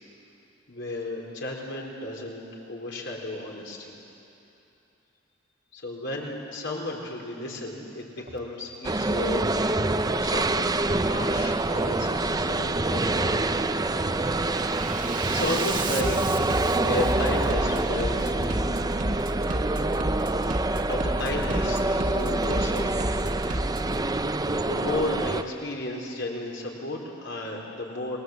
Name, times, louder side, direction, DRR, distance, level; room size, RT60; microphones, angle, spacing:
voice 1, 0.7-4.0 5.7-13.3 14.9-16.2 16.7-18.7 20.9-23.1 23.9-28.2, left 1 dB, 65° left, -1 dB, 4.3 m, -33 dB
Bass drum, 8.2-8.4 8.9-9.4 10.2-10.4 10.9-11.4 12.2-12.4 12.9-13.4 13.8-24.0, right 1 dB, 45° right, 1.5 m, -33 dB
sound 1, 8.8-25.4, right 2 dB, 20° right, 0.6 m, -26 dB
28.0 x 20.0 x 8.0 m, 2.8 s
head